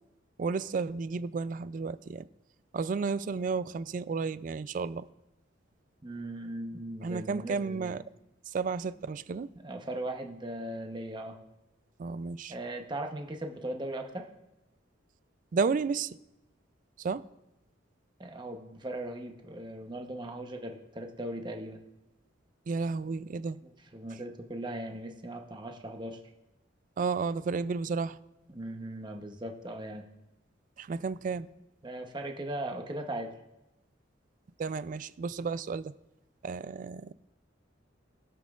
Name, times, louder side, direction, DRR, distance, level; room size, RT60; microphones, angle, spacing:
voice 1, 0.4-2.3 2.7-5.1 7.0-8.0 8.5-9.5 12.0-12.5 15.5-16.2 17.0-17.3 22.7-23.6 27.0-28.2 30.8-31.5 34.6-35.9 36.4-37.1, right 4 dB, 45° right, 0.3 m, -32 dB
voice 2, 6.0-8.0 9.6-11.4 12.5-14.3 18.2-21.8 23.6-26.2 28.5-30.1 31.8-33.3, right 1 dB, 25° right, 0.9 m, -38 dB
21.5 x 7.2 x 2.4 m
head